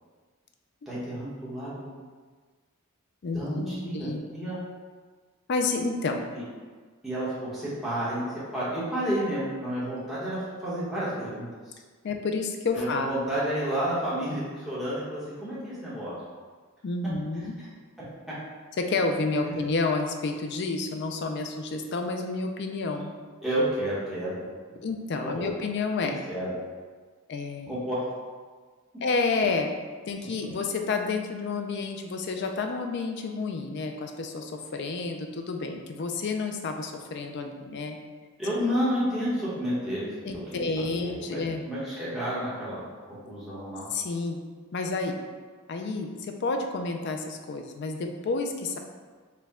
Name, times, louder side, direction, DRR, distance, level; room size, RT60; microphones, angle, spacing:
voice 1, 0.9-1.9 3.3-4.6 6.3-6.4 7.0-11.7 12.7-16.2 18.3-18.4 19.5-19.6 23.4-24.3 24.7-24.8 25.2-25.5 26.0-26.5 27.7-28.0 38.4-40.7 40.9-41.4 41.7-42.8 43.2-43.9, equal, ahead, -11 dB, 1.0 m, -31 dB
voice 2, 3.2-4.2 5.5-6.2 12.0-13.1 16.8-17.5 18.8-23.1 24.8-26.2 27.3-27.7 29.0-29.7 30.1-38.0 40.3-41.6 43.9-44.4 44.7-45.2 45.7-48.8, left 3 dB, 55° left, 4 dB, 0.4 m, -30 dB
4.4 x 2.2 x 3.5 m, 1.5 s
head